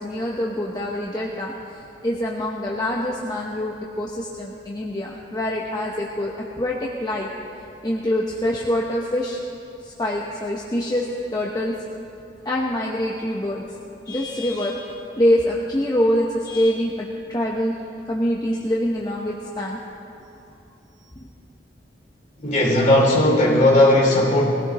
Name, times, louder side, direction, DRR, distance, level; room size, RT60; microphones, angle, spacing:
voice 1, 0.0-7.3 7.8-9.4 9.8-11.7 12.4-13.6 14.1-17.7 18.0-19.8, left 1 dB, 25° left, -3 dB, 1.0 m, -25 dB
voice 2, 22.4-24.4, left 1 dB, 45° left, -3 dB, 2.9 m, -16 dB
21.5 x 16.0 x 3.1 m, 2.7 s
head